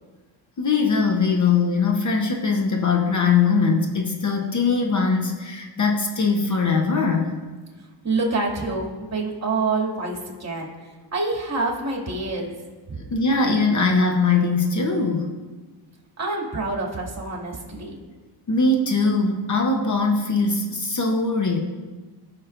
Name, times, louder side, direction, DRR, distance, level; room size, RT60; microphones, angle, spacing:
voice 1, 0.6-7.3 12.9-15.3 18.5-21.6, left 4 dB, 40° left, 2 dB, 1.0 m, -21 dB
voice 2, 8.0-10.7 11.1-12.6 12.9-13.0 16.2-18.0, right 3 dB, 35° right, -1 dB, 2.5 m, -26 dB
14.5 x 6.4 x 2.6 m, 1.3 s
cardioid pair, 75°, 47 cm